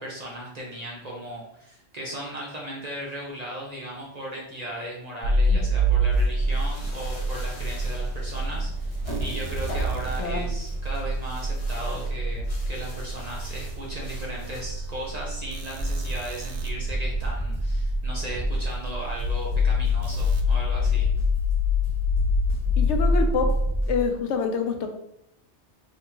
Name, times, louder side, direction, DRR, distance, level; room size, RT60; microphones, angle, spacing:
voice 1, 0.0-8.9 9.2-21.1, right 1 dB, 40° right, -3 dB, 0.7 m, -36 dB
sound 1, 5.2-23.8, left 1 dB, 80° right, 0.9 m, -27 dB
sound 2, 6.1-14.6, equal, 65° left, 1.5 m, -43 dB
voice 2, 10.2-10.5 22.8-23.6 23.9-24.9, left 5 dB, 80° left, 5 dB, 0.9 m, -26 dB
sound 3, 15.8-24.1, right 1 dB, 35° left, 1.1 m, -30 dB
3.4 x 2.8 x 2.9 m, 0.75 s
omnidirectional pair, 1.2 m